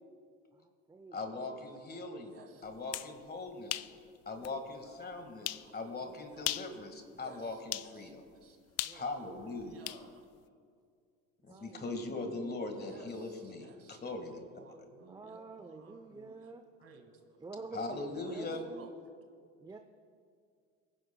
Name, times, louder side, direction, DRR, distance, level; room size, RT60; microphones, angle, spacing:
voice 1, 0.5-1.6 8.8-9.0 9.3-9.4 11.4-12.4 15.1-16.7 17.4-18.9 19.6-19.8, right 3 dB, 10° right, 7 dB, 0.5 m, -49 dB
voice 2, 1.1-2.4 2.6-3.9 4.2-8.2 8.9-9.9 11.4-14.4 17.7-18.6, left 3 dB, 30° left, 5 dB, 1.7 m, -40 dB
sound 1, 2.7-3.1 3.7-3.9 4.4-4.5 5.4-5.7 6.4-6.7 7.7-7.9 8.8-10.0, left 15 dB, 50° left, 0.5 m, -37 dB
voice 3, 8.9-9.3 9.6-10.2 11.5-11.6 12.9-13.1 13.6-14.0 14.6-16.5 16.8-17.2 17.7-18.5 18.8-18.9, right 5 dB, 45° right, 4 dB, 1.8 m, -56 dB
23.5 x 10.0 x 2.2 m, 2.2 s
supercardioid pair, 80°, 33 cm